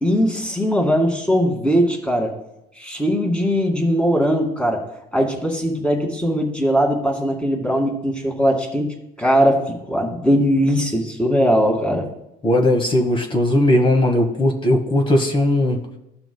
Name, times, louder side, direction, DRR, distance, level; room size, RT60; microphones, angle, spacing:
voice 1, 0.0-2.3 2.8-4.9 5.1-9.6 9.9-12.1, equal, 5° left, 0 dB, 2.1 m, -20 dB
voice 2, 12.4-15.8, left 1 dB, 30° left, 3 dB, 1.3 m, -18 dB
15.5 x 5.9 x 2.3 m, 0.86 s
cardioid pair, 110°, 17 cm